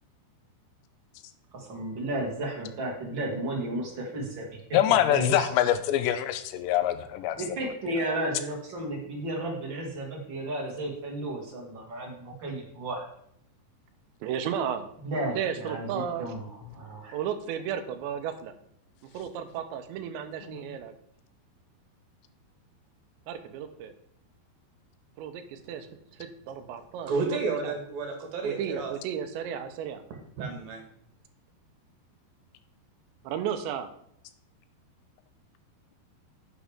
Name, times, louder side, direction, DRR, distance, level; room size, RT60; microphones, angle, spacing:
voice 1, 1.5-4.8 5.1-5.5 7.4-13.0 15.0-17.1, right 1 dB, 35° right, -1 dB, 2.1 m, -33 dB
voice 2, 4.7-7.4 20.5-20.6, left 12 dB, 90° left, 11 dB, 2.9 m, -24 dB
voice 3, 14.2-14.9 15.4-16.3 17.1-18.5 19.1-20.9 23.3-23.9 25.2-25.9 26.5-27.8 28.4-30.0 33.2-33.9, right 8 dB, 90° right, 9 dB, 3.1 m, -34 dB
voice 4, 27.1-28.9 30.4-30.8, right 4 dB, 65° right, 3 dB, 3.2 m, -31 dB
9.9 x 8.6 x 3.6 m, 0.70 s
omnidirectional pair, 5.0 m